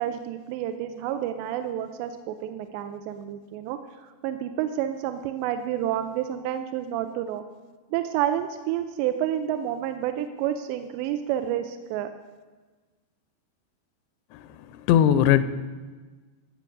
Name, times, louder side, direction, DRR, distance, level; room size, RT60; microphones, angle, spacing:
voice 1, 0.0-3.8 4.2-7.4 7.9-12.1, right 11 dB, 85° right, 8 dB, 2.7 m, -29 dB
voice 2, 14.7-15.4, left 10 dB, 90° left, 13 dB, 2.9 m, -19 dB
13.5 x 7.7 x 6.5 m, 1.3 s
omnidirectional pair, 5.0 m